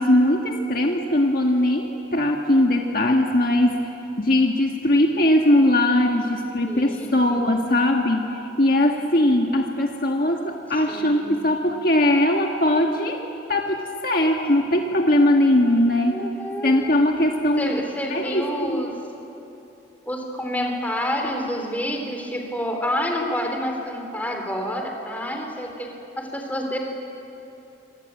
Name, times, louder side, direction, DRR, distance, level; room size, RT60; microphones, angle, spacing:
voice 1, 0.0-3.9 4.2-13.2 13.5-16.2 16.6-17.7 18.1-18.9, left 1 dB, 50° left, 2 dB, 1.6 m, -20 dB
voice 2, 6.7-7.5 10.9-11.4 16.1-16.8 17.6-18.9 20.1-26.8, equal, 10° left, 2 dB, 3.7 m, -28 dB
25.5 x 25.5 x 9.1 m, 2.9 s
head